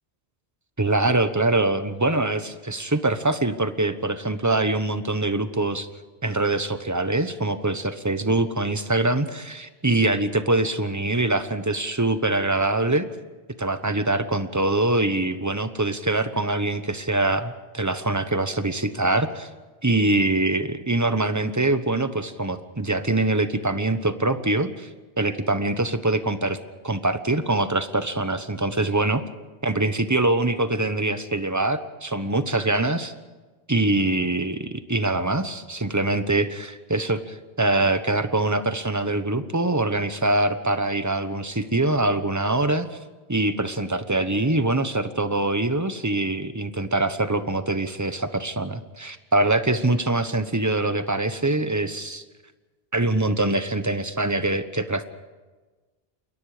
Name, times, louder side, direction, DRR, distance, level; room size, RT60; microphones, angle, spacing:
voice 1, 0.8-5.9 6.2-13.1 13.6-19.5 19.8-24.9 25.2-26.6 26.8-29.2 29.6-33.1 33.7-42.9 43.3-52.2 52.9-55.0, right 2 dB, 15° right, 10 dB, 1.1 m, -24 dB
28.5 x 22.5 x 5.1 m, 1.3 s
omnidirectional pair, 1.1 m